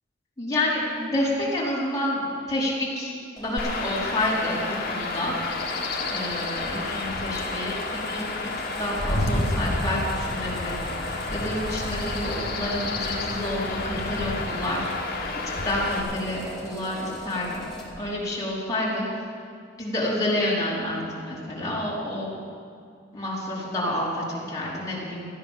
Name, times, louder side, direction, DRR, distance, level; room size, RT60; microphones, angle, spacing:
voice 1, 0.4-4.6 4.9-5.3 6.1-8.5 8.8-10.9 11.3-15.1 15.6-17.6 18.0-19.1 19.8-22.3 23.1-25.3, left 1 dB, 20° left, -7 dB, 4.5 m, -29 dB
sound 1, 3.4-18.0, equal, 5° left, 2.8 m, -40 dB
Chirp tweet / Wind / Stream, 3.6-16.0, left 2 dB, 55° left, 2.0 m, -30 dB
15.0 x 10.5 x 7.4 m, 2.3 s
head